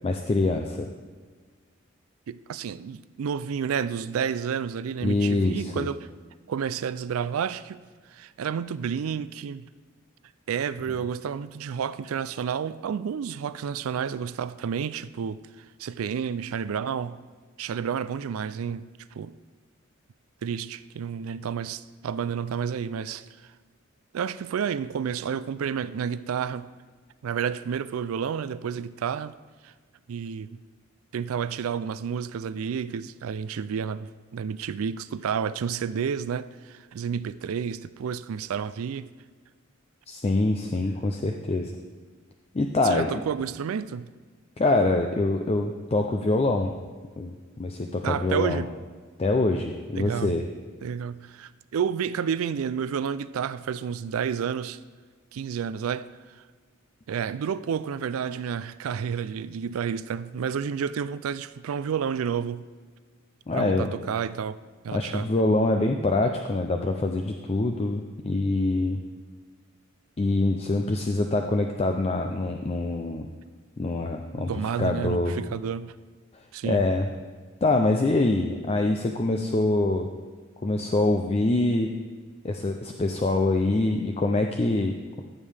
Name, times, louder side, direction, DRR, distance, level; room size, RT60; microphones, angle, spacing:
voice 1, 0.0-0.9 5.0-5.9 40.1-41.7 42.5-43.1 44.6-46.8 47.2-48.7 49.2-50.4 63.5-63.9 64.9-69.0 70.2-73.3 73.8-74.5 74.8-75.4 76.6-77.1 77.6-80.1 80.6-81.9 82.4-85.2, left 2 dB, 30° left, 0.4 m, -25 dB
voice 2, 2.3-6.1 6.5-7.8 8.1-9.7 10.5-17.2 17.6-19.3 20.4-23.2 24.1-26.7 27.2-29.3 29.6-29.7 30.1-30.6 31.1-39.1 42.8-44.1 48.0-48.7 50.0-50.4 50.8-54.8 55.3-56.1 57.1-62.6 63.5-64.6 64.8-65.3 74.5-75.9 76.5-76.9, right 7 dB, 85° right, 0.4 m, -30 dB
14.0 x 7.4 x 3.4 m
head